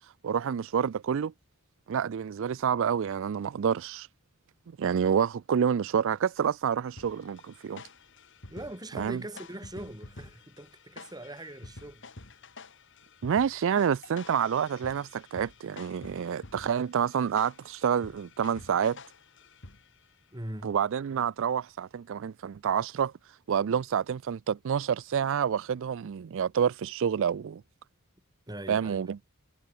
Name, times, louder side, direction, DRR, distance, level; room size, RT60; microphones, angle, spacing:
voice 1, 0.2-1.3 1.9-4.1 4.8-7.8 8.9-9.2 13.2-19.0 20.6-23.1 23.5-27.6 28.7-29.2, right 7 dB, 65° right, 0.4 m, -28 dB
sound 1, 7.0-20.1, left 3 dB, 60° left, 3.8 m, -49 dB
voice 2, 8.5-12.1 20.3-20.8 28.5-29.1, right 1 dB, 20° right, 3.3 m, -41 dB
head